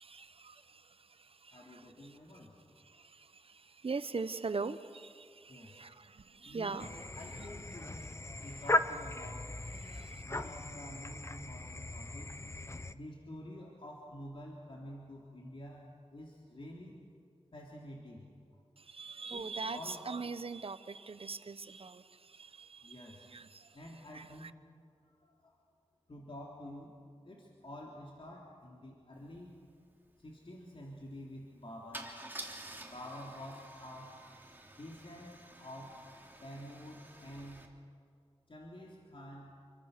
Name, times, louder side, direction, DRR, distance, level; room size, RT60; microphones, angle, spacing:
voice 1, 0.0-2.2 2.8-6.9 9.8-10.2 18.8-23.8 24.1-24.5, right 4 dB, 60° right, 13 dB, 1.0 m, -42 dB
voice 2, 1.5-2.6 5.5-5.8 6.4-6.9 7.2-8.1 8.4-9.5 10.2-12.3 12.9-17.0 17.5-18.3 19.3-19.4 19.7-20.0 22.8-23.3 23.7-24.5 25.1-25.2 25.4-25.5 26.1-26.9 27.2-29.5 30.2-32.1 32.8-34.1 34.8-36.0 36.4-37.7 38.5-39.5, left 1 dB, 55° left, -2 dB, 3.4 m, -48 dB
sound 1, 6.8-12.9, left 2 dB, 25° left, 0.9 m, -38 dB
Car / Engine starting / Idling, 29.3-29.4 29.7-29.9 31.9-37.7, right 1 dB, 20° right, 3.4 m, -50 dB
28.5 x 24.0 x 6.8 m, 2.4 s
wide cardioid pair, 75°, 11 cm